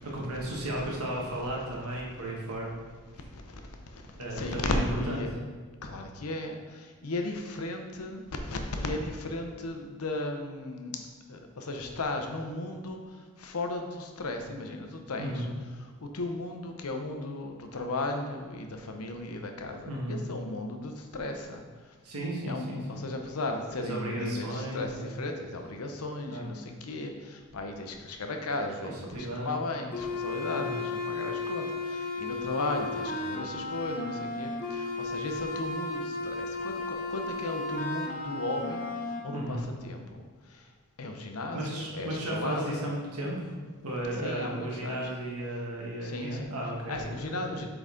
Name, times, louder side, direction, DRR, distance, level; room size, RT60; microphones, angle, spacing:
voice 1, 0.0-2.7 4.1-5.2 15.2-15.5 19.9-20.3 22.0-23.0 23.8-25.2 26.3-26.5 29.0-29.6 30.6-30.7 39.3-39.7 41.5-43.5 43.8-47.6, right 1 dB, 85° right, -2 dB, 1.5 m, -34 dB
voice 2, 3.1-5.3 5.8-11.0 11.3-15.5 15.8-21.6 22.5-40.7 41.0-42.9 44.2-45.1 46.0-46.5 46.9-47.7, left 2 dB, 80° left, 4 dB, 0.8 m, -36 dB
sound 1, 29.9-39.2, left 3 dB, 40° left, 0.8 m, -34 dB
7.9 x 4.0 x 3.7 m, 1.5 s
head